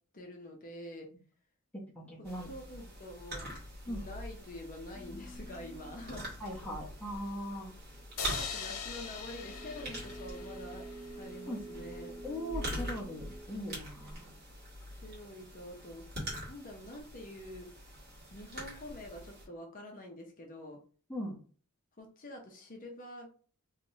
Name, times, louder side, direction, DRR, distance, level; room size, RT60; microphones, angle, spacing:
voice 1, 0.1-1.1 2.5-3.5 3.9-6.3 8.3-10.8 11.2-12.2 15.0-16.0 16.5-17.7 18.3-20.8 22.0-23.3, left 1 dB, 35° left, 2 dB, 0.7 m, -46 dB
voice 2, 2.1-2.5 3.9-4.0 6.4-7.7 11.5-11.6 12.2-14.3 21.1-21.4, equal, 5° left, -4 dB, 0.8 m, -39 dB
sound 1, 2.2-19.4, equal, 45° right, 1.7 m, -44 dB
sound 2, 4.9-14.7, right 1 dB, 65° left, 1.3 m, -50 dB
sound 3, 8.2-11.5, left 6 dB, 80° left, 0.7 m, -42 dB
3.3 x 3.0 x 2.7 m, 0.41 s
head